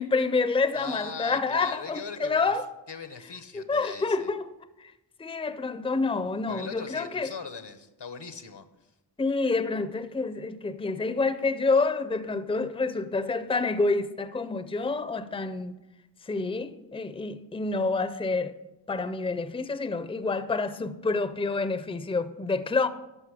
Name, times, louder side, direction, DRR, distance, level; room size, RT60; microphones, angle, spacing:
voice 1, 0.0-2.7 3.5-4.5 4.8-4.9 5.2-7.3 9.2-15.7 16.2-18.5 18.9-22.9, left 3 dB, 15° left, 0.5 m, -28 dB
voice 2, 0.7-2.5 2.9-4.3 6.5-8.6, left 5 dB, 75° left, 0.9 m, -40 dB
12.5 x 5.2 x 4.9 m
wide cardioid pair, 40°, 42 cm